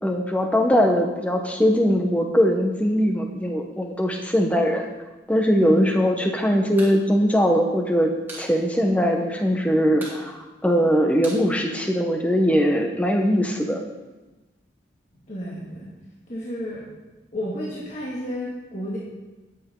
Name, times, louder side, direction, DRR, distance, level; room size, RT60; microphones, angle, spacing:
voice 1, 0.0-4.9 5.3-13.8, equal, 10° left, 2 dB, 1.1 m, -21 dB
voice 2, 5.6-5.9 15.3-15.9 16.3-16.8 17.3-19.0, equal, 40° left, -6 dB, 2.2 m, -31 dB
sound 1, 6.8-7.0 7.3-7.4 7.7-8.5 8.8-8.9 9.2-9.6 9.9-12.3, right 1 dB, 10° right, 2.5 m, -41 dB
17.5 x 8.3 x 3.9 m, 1.1 s
head